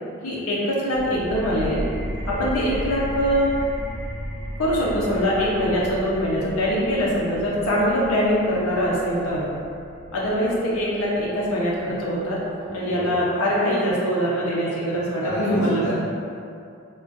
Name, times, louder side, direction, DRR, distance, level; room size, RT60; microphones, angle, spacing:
voice 1, 0.2-1.8 2.3-3.5 4.6-9.5 10.1-12.4 12.7-15.9, equal, 80° left, -6 dB, 0.6 m, -23 dB
sound 1, 0.9-12.3, equal, 90° right, 0.7 m, -35 dB
voice 2, 12.6-13.2 15.2-15.9, equal, 15° left, -11 dB, 0.9 m, -32 dB
3.7 x 2.2 x 2.5 m, 2.5 s
head